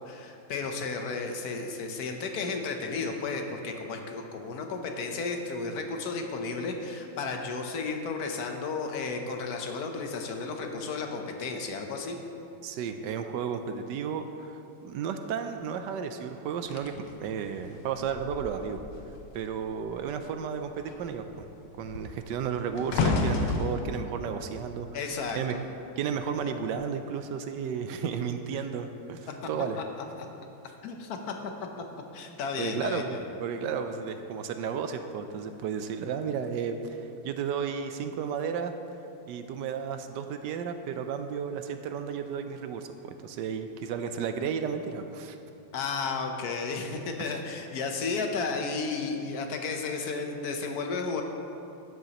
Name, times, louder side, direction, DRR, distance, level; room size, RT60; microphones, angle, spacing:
voice 1, 0.0-12.2 24.9-25.6 30.8-31.3 32.1-33.2 45.7-51.2, left 4 dB, 60° left, 4 dB, 1.1 m, -33 dB
voice 2, 12.6-16.9 17.2-18.8 19.3-21.5 21.8-24.9 25.3-25.6 26.0-29.8 32.6-38.7 39.3-45.4 47.2-47.3, right 7 dB, 75° right, 8 dB, 1.1 m, -33 dB
sound 1, 16.7-19.4 19.7-20.1 20.4-25.7 26.5-26.7, left 3 dB, 85° left, 1.6 m, -32 dB
12.5 x 9.5 x 2.9 m, 2.7 s
omnidirectional pair, 2.2 m